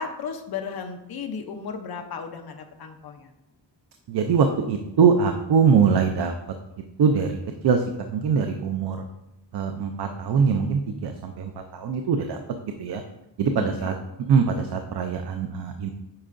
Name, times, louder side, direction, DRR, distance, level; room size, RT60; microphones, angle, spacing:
voice 1, 0.0-3.3 13.6-13.9, left 5 dB, 55° left, 5 dB, 0.7 m, -35 dB
voice 2, 4.1-6.3 7.0-7.4 7.6-7.8 8.1-9.0 9.5-12.4 12.8-13.0 13.4-13.9 14.3-15.9, right 6 dB, 60° right, 5 dB, 0.6 m, -22 dB
8.7 x 5.5 x 2.5 m, 0.92 s
wide cardioid pair, 170°, 45 cm